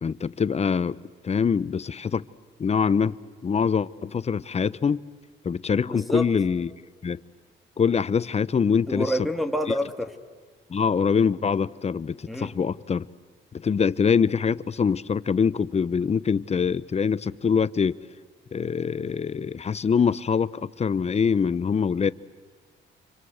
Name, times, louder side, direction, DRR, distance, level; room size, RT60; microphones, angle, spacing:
voice 1, 0.0-1.0 1.2-2.2 2.6-5.0 5.4-6.7 7.0-7.2 7.8-9.1 9.7-9.8 10.7-13.1 13.5-18.0 18.5-22.1, left 6 dB, 35° left, 0.8 m, -24 dB
voice 2, 5.9-6.3 8.9-10.1 12.3-12.5, equal, ahead, 2.5 m, -27 dB
29.5 x 25.0 x 8.0 m
cardioid pair, 90°, 20 cm